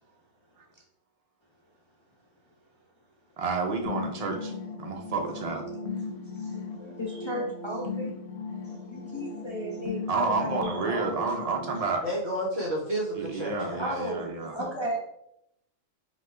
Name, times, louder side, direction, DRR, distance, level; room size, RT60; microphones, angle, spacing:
voice 1, 3.4-4.5 4.8-5.6 10.1-12.0 13.1-14.5, right 4 dB, 75° right, 2 dB, 0.3 m, -30 dB
sound 1, 3.9-11.8, left 3 dB, 80° left, 1.0 m, -37 dB
voice 2, 6.0-8.1 8.6-11.5 13.8-15.0, equal, 45° left, -3 dB, 0.3 m, -35 dB
voice 3, 12.0-13.8, right 1 dB, 55° right, -5 dB, 1.3 m, -31 dB
5.5 x 2.3 x 3.2 m, 0.79 s
omnidirectional pair, 1.4 m